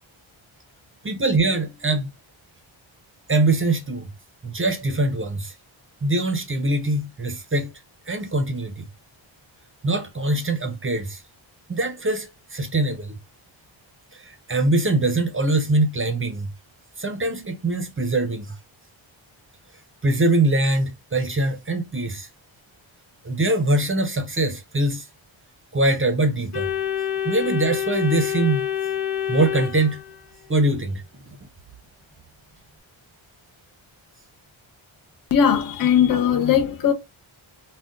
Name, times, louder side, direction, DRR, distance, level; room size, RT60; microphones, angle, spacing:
voice 1, 1.0-2.1 3.3-4.1 4.4-5.5 6.0-7.7 8.1-8.9 9.8-11.2 11.7-13.2 14.1-16.5 17.0-18.5 20.0-22.3 23.2-25.1 25.7-26.7 27.2-28.7 29.3-30.0 30.5-31.0, right 2 dB, 25° right, 0.5 m, -23 dB
Organ, 26.5-30.5, left 10 dB, 90° left, 1.1 m, -27 dB
voice 2, 35.3-36.9, left 8 dB, 45° left, 0.5 m, -19 dB
2.4 x 2.2 x 3.6 m
wide cardioid pair, 120°, 49 cm